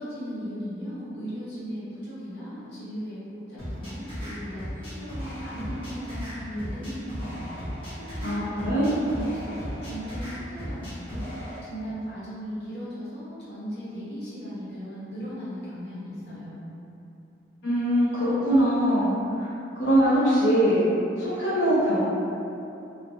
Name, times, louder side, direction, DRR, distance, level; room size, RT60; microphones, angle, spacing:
voice 1, 0.0-3.2 3.5-7.5 8.1-11.3 11.6-16.7, equal, 65° left, -11 dB, 1.0 m, -37 dB
sound 1, 3.6-11.6, equal, 30° left, 0.9 m, -36 dB
voice 2, 8.2-8.9 17.6-19.1 19.4-19.5 19.8-20.8 21.2-22.0, equal, 80° left, -13 dB, 0.6 m, -22 dB
3.1 x 2.1 x 2.5 m, 2.8 s
head